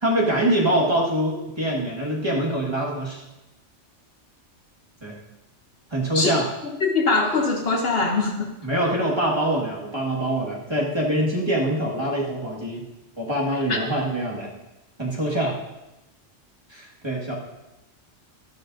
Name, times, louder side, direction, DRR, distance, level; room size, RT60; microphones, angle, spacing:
voice 1, 0.0-3.2 5.0-5.2 5.9-6.5 8.6-12.9 13.2-14.5 15.0-15.5 16.7-17.3, right 1 dB, 20° right, -4 dB, 1.8 m, -24 dB
voice 2, 6.8-8.5 13.7-13.8, left 3 dB, 55° left, 3 dB, 1.1 m, -22 dB
13.0 x 11.5 x 2.6 m, 0.98 s
omnidirectional pair, 1.3 m